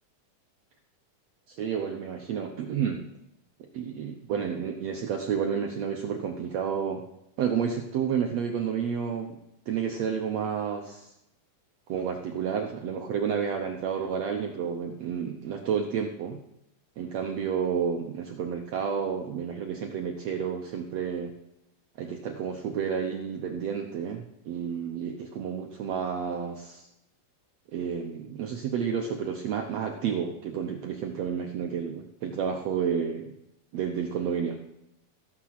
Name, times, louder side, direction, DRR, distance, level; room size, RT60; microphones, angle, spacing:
voice 1, 1.5-3.0 3.7-7.0 7.4-9.4 9.7-11.1 11.9-16.4 17.0-21.3 22.0-26.9 27.7-33.3 33.7-34.6, right 7 dB, 75° right, 3 dB, 1.5 m, -30 dB
15.0 x 8.9 x 5.9 m, 0.84 s
omnidirectional pair, 4.2 m